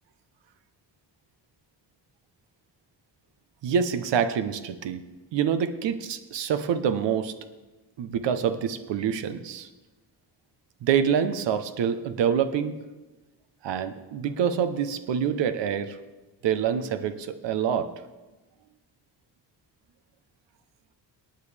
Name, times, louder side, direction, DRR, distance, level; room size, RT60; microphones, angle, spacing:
voice 1, 3.6-5.0 5.3-7.3 8.0-9.7 10.8-12.7 13.6-16.0 16.4-17.9, right 8 dB, 85° right, 11 dB, 0.9 m, -26 dB
19.0 x 9.1 x 3.4 m, 1.1 s
cardioid pair, 75°, 42 cm